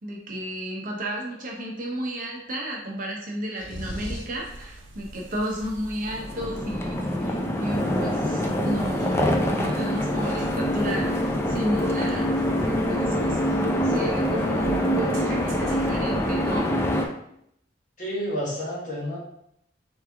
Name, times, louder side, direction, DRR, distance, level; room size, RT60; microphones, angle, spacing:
voice 1, 0.0-16.7, equal, 45° right, -1 dB, 0.8 m, -32 dB
sound 1, 3.5-4.4, left 1 dB, 80° left, 0.8 m, -35 dB
sound 2, 3.8-16.6, right 1 dB, 90° right, 0.6 m, -43 dB
train station train approaching and stopping, 6.1-17.1, equal, 15° left, 0.4 m, -25 dB
voice 2, 18.0-19.2, equal, 45° left, -4 dB, 1.2 m, -30 dB
3.4 x 3.2 x 3.5 m, 0.75 s
head